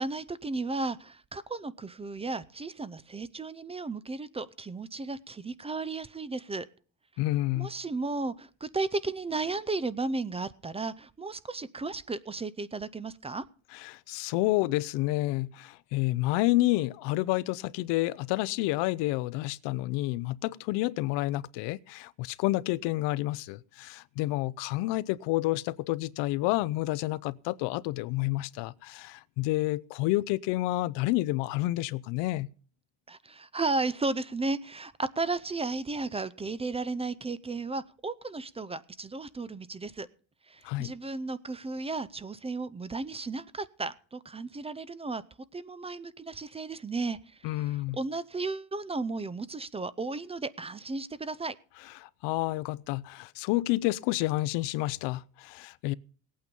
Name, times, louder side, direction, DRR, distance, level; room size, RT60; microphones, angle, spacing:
voice 1, 0.0-6.7 7.6-13.4 33.1-40.1 40.5-45.2 45.5-47.2 47.5-51.5, right 3 dB, 15° right, 0.5 m, -34 dB
voice 2, 7.2-7.7 13.7-32.5 40.6-40.9 47.4-48.0 52.0-55.9, left 18 dB, 90° left, 0.7 m, -29 dB
18.5 x 8.8 x 5.3 m
cardioid pair, 140°, 41 cm